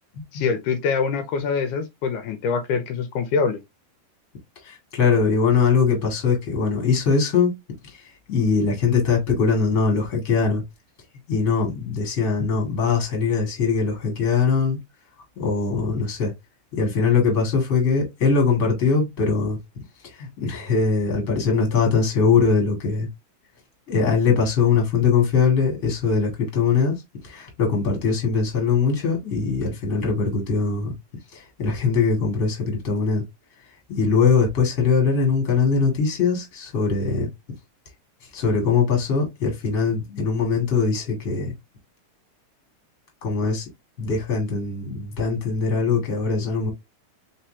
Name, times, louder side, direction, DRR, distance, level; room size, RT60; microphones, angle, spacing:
voice 1, 0.3-3.6, left 5 dB, 85° left, 2.2 m, -24 dB
voice 2, 4.6-7.5 8.3-10.6 11.3-14.8 15.4-16.3 16.7-19.6 20.0-23.1 23.9-27.0 27.2-30.9 31.3-33.2 33.9-37.3 38.3-41.5 43.2-43.7 44.0-46.7, left 5 dB, 30° left, 1.7 m, -21 dB
4.3 x 4.0 x 2.7 m
omnidirectional pair, 3.7 m